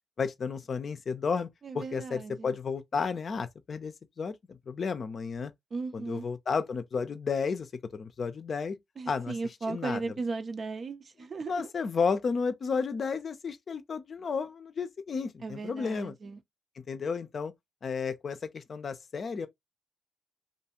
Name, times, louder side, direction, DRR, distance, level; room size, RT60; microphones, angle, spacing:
voice 1, 0.2-1.5 1.7-5.5 5.9-8.8 9.1-9.3 9.7-10.0 11.5-16.1 16.8-17.5 17.8-19.5, left 5 dB, 60° left, 0.4 m, -32 dB
voice 2, 1.6-2.5 5.7-6.2 9.0-11.7 15.4-16.4, right 4 dB, 55° right, 0.5 m, -36 dB
2.6 x 2.3 x 2.8 m
hypercardioid pair, 40°, 0 cm